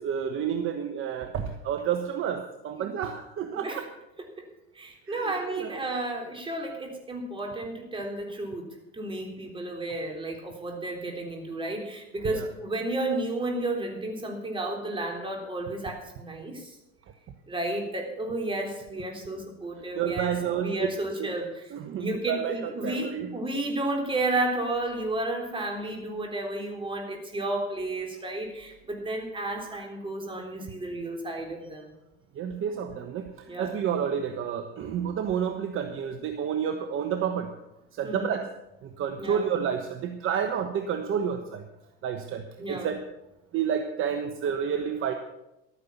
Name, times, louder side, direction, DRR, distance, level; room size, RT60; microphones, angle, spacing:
voice 1, 0.0-3.8 5.1-5.9 12.2-12.5 19.9-20.9 21.2-21.3 21.7-23.3 32.3-37.5 37.9-38.5 38.8-41.6 42.0-43.0 43.5-45.1, right 8 dB, 45° right, 6 dB, 1.2 m, -30 dB
voice 2, 4.7-8.7 8.9-16.8 17.5-20.3 20.6-21.7 22.0-31.9 33.5-33.7 38.0-38.3 39.2-39.4 42.6-42.9, right 2 dB, 15° right, 1 dB, 3.7 m, -32 dB
12.5 x 9.6 x 7.1 m, 0.91 s
supercardioid pair, 100°, 30 cm